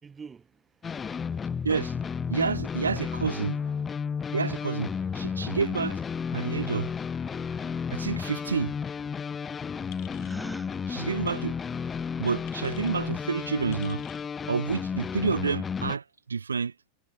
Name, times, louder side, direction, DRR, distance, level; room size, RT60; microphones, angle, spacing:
voice 1, 0.0-2.0 2.6-2.8, right 5 dB, 15° right, 3.4 m, -50 dB
sound 1, 0.8-16.0, left 6 dB, 20° left, 0.7 m, -33 dB
voice 2, 1.6-1.9 2.3-3.6 4.3-6.0 6.3-6.9 7.9-8.7 10.9-11.5 12.2-14.0 14.5-16.7, right 5 dB, 75° right, 0.9 m, -29 dB
sound 2, 9.9-10.4 11.2-11.4 12.5-13.0 13.7-14.3, left 20 dB, 40° left, 3.1 m, -51 dB
Gasp, 10.2-10.7, equal, ahead, 2.5 m, -40 dB
figure-of-eight pair, 90°, 0 cm